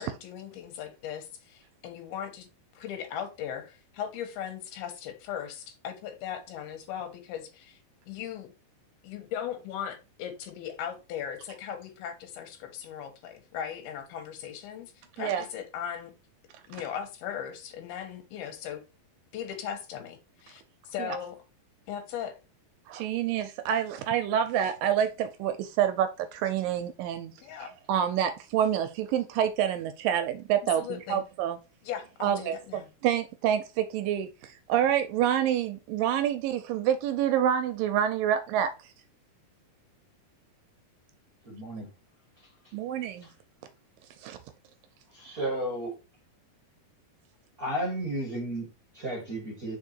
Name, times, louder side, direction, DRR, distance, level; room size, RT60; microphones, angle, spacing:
voice 1, 0.0-2.5 2.8-7.8 8.1-8.5 9.0-16.1 16.7-18.8 19.3-21.4 21.9-22.3 27.4-27.7 30.8-31.2 31.8-32.9, left 9 dB, 90° left, 3.1 m, -38 dB
voice 2, 22.9-27.3 27.6-31.6 32.2-38.9 42.7-43.3 44.2-44.4 45.3-45.4, right 10 dB, 80° right, 2.1 m, -27 dB
voice 3, 41.4-41.9 43.2-43.3 45.1-45.9 47.6-49.8, right 1 dB, 45° right, 1.1 m, -33 dB
5.1 x 4.6 x 4.4 m
omnidirectional pair, 4.3 m